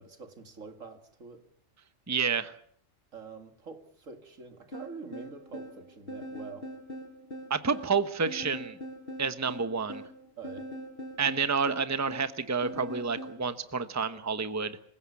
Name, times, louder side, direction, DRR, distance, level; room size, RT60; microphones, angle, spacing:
voice 1, 0.0-1.5 3.1-6.7 10.4-10.7, right 5 dB, 75° right, 2.5 m, -46 dB
voice 2, 2.1-2.5 7.5-8.8 9.2-10.0 11.2-14.8, right 5 dB, 15° right, 1.0 m, -29 dB
sound 1, 4.7-13.4, equal, 45° left, 5.7 m, -42 dB
26.5 x 16.5 x 8.4 m
omnidirectional pair, 1.4 m